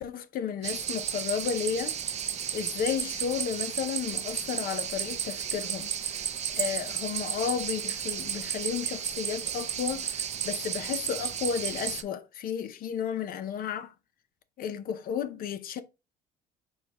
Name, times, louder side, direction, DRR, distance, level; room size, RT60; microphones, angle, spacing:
voice 1, 0.0-2.0 2.5-13.9 14.6-15.8, left 8 dB, 60° left, 0.6 m, -33 dB
sound 1, 0.6-12.0, right 9 dB, 40° right, 0.5 m, -33 dB
4.4 x 2.2 x 4.7 m
cardioid pair, 110°, 17 cm